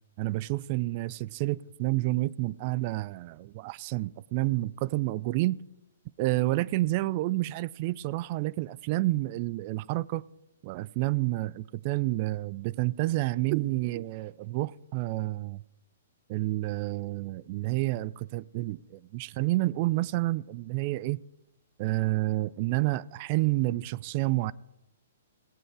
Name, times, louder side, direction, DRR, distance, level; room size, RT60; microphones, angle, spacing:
voice 1, 0.2-5.6 6.2-10.2 10.6-15.6 16.3-21.2 21.8-24.5, right 18 dB, 40° right, 0.4 m, -29 dB
17.0 x 8.6 x 4.8 m
figure-of-eight pair, 120°, 0 cm